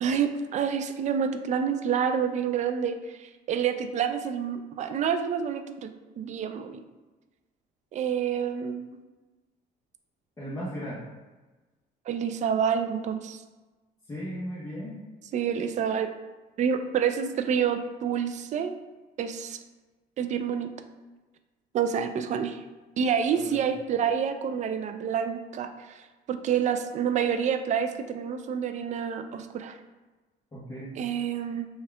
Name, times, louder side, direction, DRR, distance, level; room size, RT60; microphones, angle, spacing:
voice 1, 0.0-5.9 6.2-6.8 7.9-8.9 12.1-13.4 15.3-16.1 16.6-18.7 19.2-19.6 20.2-20.7 21.7-22.6 23.0-26.0 26.3-29.8 31.0-31.7, right 7 dB, 45° right, 8 dB, 0.4 m, -28 dB
voice 2, 10.4-11.0 14.1-15.0 23.3-23.6 30.5-30.9, equal, 20° left, -8 dB, 1.0 m, -36 dB
4.2 x 2.3 x 3.3 m, 1.2 s
cardioid pair, 110°, 17 cm